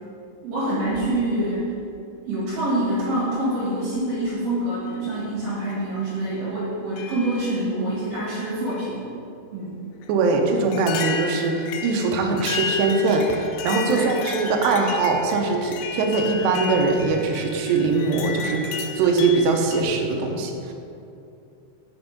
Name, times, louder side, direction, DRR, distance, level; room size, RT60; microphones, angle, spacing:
voice 1, 0.4-1.7 2.3-9.1 9.5-9.8 13.9-14.1, right 1 dB, 60° right, -9 dB, 3.4 m, -26 dB
sound 1, 0.9-1.7 2.9-3.0 4.0-4.3 4.9-5.0 5.7-5.8 7.0-7.7 8.1-8.9 10.0-10.1 10.7-19.8, left 5 dB, 85° left, 2.9 m, -33 dB
voice 2, 10.1-20.7, right 3 dB, 80° right, 2 dB, 2.6 m, -22 dB
7.0 x 5.8 x 5.2 m, 2.7 s
omnidirectional pair, 5.6 m